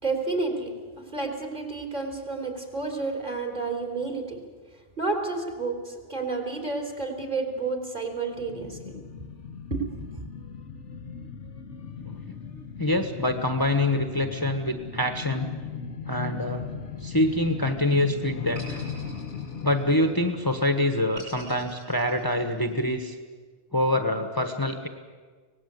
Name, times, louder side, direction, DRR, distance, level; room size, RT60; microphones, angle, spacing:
voice 1, 0.0-4.4 5.0-9.0 9.7-10.2, right 3 dB, 45° right, 3 dB, 3.6 m, -30 dB
sound 1, 8.3-21.5 21.9-22.0, left 6 dB, 85° left, 1.5 m, -38 dB
voice 2, 12.0-12.4 12.8-15.5 16.1-16.6 17.0-18.8 19.6-23.2 23.7-24.9, left 1 dB, 20° left, 6 dB, 1.3 m, -25 dB
sound 2, 17.0-17.8 18.5-20.2 21.2-22.8, right 2 dB, 70° right, 8.3 m, -47 dB
24.5 x 19.0 x 8.2 m, 1.5 s
omnidirectional pair, 1.2 m